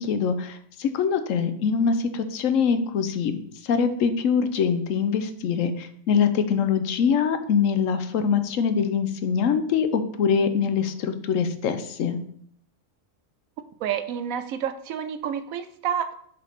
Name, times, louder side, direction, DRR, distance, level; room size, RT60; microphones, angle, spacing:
voice 1, 0.0-3.4 3.6-12.2, left 6 dB, 70° left, 10 dB, 1.0 m, -23 dB
voice 2, 13.8-16.1, right 8 dB, 85° right, 10 dB, 1.1 m, -29 dB
6.5 x 3.5 x 5.7 m, 0.65 s
omnidirectional pair, 1.4 m